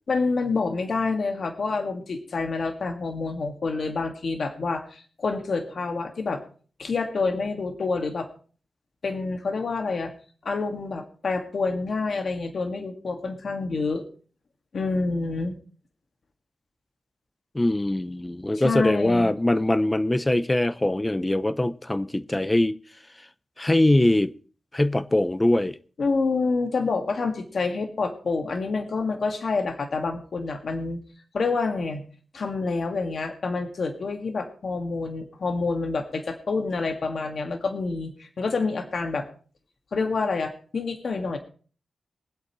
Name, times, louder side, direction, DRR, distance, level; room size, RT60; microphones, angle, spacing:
voice 1, 0.1-6.4 6.8-8.3 9.0-10.1 10.4-14.0 14.7-15.5 18.5-19.3 26.0-31.0 31.3-32.0 32.3-39.3 39.9-41.4, left 4 dB, 60° left, 1.9 m, -27 dB
voice 2, 17.5-22.7 23.6-24.3 24.7-25.8, left 1 dB, 15° left, 0.6 m, -22 dB
23.0 x 8.1 x 3.1 m
wide cardioid pair, 105°, 0 cm